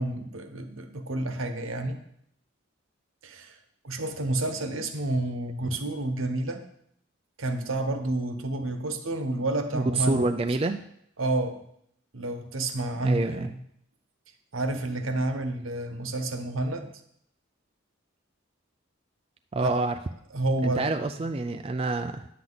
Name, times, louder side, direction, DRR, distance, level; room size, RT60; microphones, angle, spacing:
voice 1, 0.0-2.0 3.2-3.6 3.8-6.7 7.4-10.3 11.2-11.6 12.1-13.6 14.5-16.9 19.6-19.8 20.3-20.9, right 2 dB, 75° right, 7 dB, 1.0 m, -29 dB
voice 2, 9.7-10.8 13.0-13.5 19.5-19.9 20.6-22.3, right 3 dB, 30° right, 6 dB, 0.4 m, -27 dB
10.5 x 7.6 x 4.0 m, 0.72 s
head